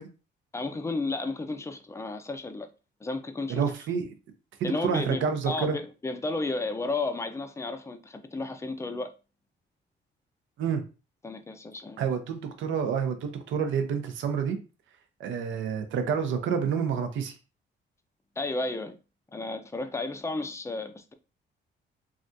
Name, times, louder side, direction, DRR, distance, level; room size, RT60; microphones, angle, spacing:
voice 1, 0.5-2.7 3.0-3.6 4.6-9.1 11.2-12.0 18.4-19.0 19.3-21.1, left 3 dB, 15° left, 0.4 m, -33 dB
voice 2, 3.5-4.1 4.6-5.8 10.6-10.8 12.0-14.6 15.2-17.3, right 6 dB, 75° right, 0.6 m, -28 dB
3.2 x 2.4 x 2.6 m
cardioid pair, 90°, 20 cm